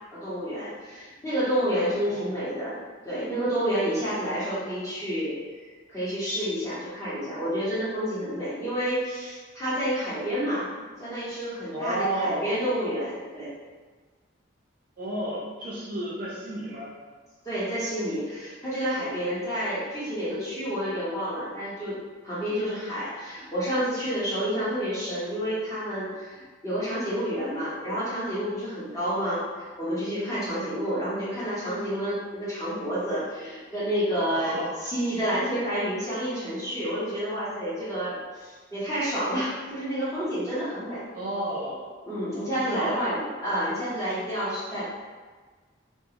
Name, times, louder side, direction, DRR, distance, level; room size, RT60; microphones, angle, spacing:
voice 1, 0.1-2.8 3.0-5.3 5.9-13.5 17.4-22.0 22.2-34.6 34.8-41.0 42.1-45.0, equal, 15° left, -11 dB, 0.9 m, -29 dB
voice 2, 11.7-12.7 15.0-16.9 34.3-34.7 41.1-41.9 42.3-43.1, right 1 dB, 45° right, -5 dB, 0.5 m, -32 dB
2.4 x 2.3 x 2.8 m, 1.4 s
head